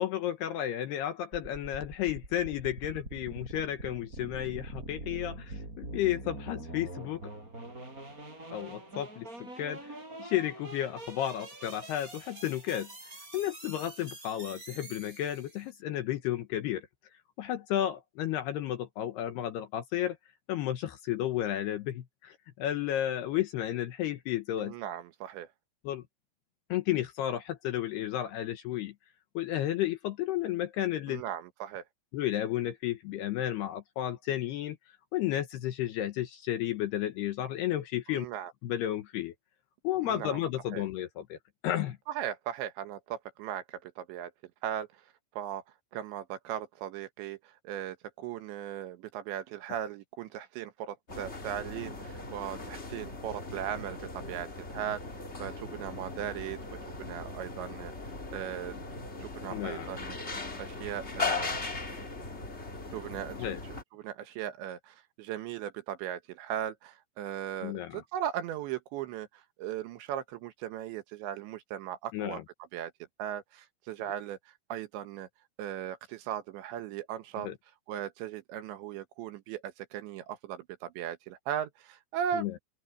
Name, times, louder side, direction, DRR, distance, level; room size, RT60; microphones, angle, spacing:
voice 1, 0.0-7.2 8.5-12.9 13.3-16.9 17.4-20.2 20.5-24.7 25.8-26.0 26.7-28.9 29.3-31.2 32.1-34.8 35.1-38.3 38.6-39.3 39.8-41.4 41.6-42.0 59.5-59.9 63.4-63.6 67.6-68.0 72.1-72.4 77.4-77.5 82.3-82.5, left 12 dB, 70° left, 2.7 m, -32 dB
sound 1, 1.3-15.7, right 2 dB, 15° right, 6.2 m, -44 dB
voice 2, 24.6-25.5 31.1-31.8 38.1-38.5 40.0-40.4 40.7-40.8 42.1-44.3 44.6-44.9 45.4-45.6 45.9-55.0 55.4-56.6 57.0-58.8 59.2-60.2 60.6-61.6 62.9-69.3 69.6-72.4 72.7-72.9 73.2-74.4 74.7-75.3 75.6-77.5 77.9-82.5, right 10 dB, 70° right, 3.3 m, -38 dB
sound 2, 51.1-63.8, left 3 dB, 30° left, 1.3 m, -39 dB
open air
omnidirectional pair, 5.7 m